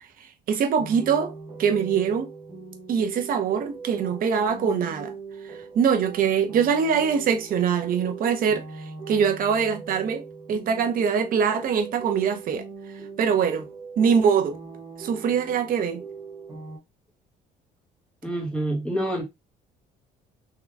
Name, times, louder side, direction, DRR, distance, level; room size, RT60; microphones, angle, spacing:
voice 1, 0.5-2.3 2.9-5.1 5.4-8.6 9.1-12.6 13.2-13.7 14.0-14.6 15.0-16.0, right 7 dB, 55° right, 0.8 m, -23 dB
sound 1, 0.8-16.8, right 4 dB, 25° right, 1.1 m, -41 dB
voice 2, 18.2-19.2, right 1 dB, 5° left, 1.5 m, -27 dB
3.7 x 2.9 x 2.2 m
cardioid pair, 110°, 17 cm